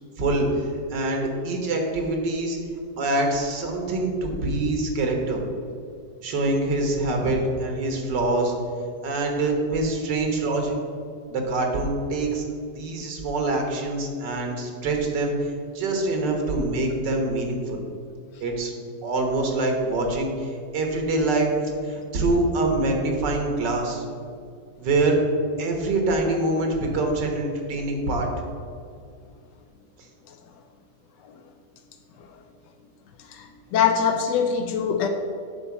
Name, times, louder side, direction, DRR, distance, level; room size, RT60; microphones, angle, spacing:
voice 1, 0.9-2.6 3.0-5.4 6.2-8.5 9.0-10.8 11.3-12.4 12.8-17.8 18.4-18.7 19.0-21.5 21.8-24.0 24.8-25.2 25.6-28.3, right 2 dB, 80° right, 2 dB, 1.9 m, -25 dB
voice 2, 33.3-35.1, left 7 dB, 85° left, 4 dB, 1.3 m, -23 dB
9.1 x 4.0 x 7.0 m, 2.3 s
omnidirectional pair, 1.9 m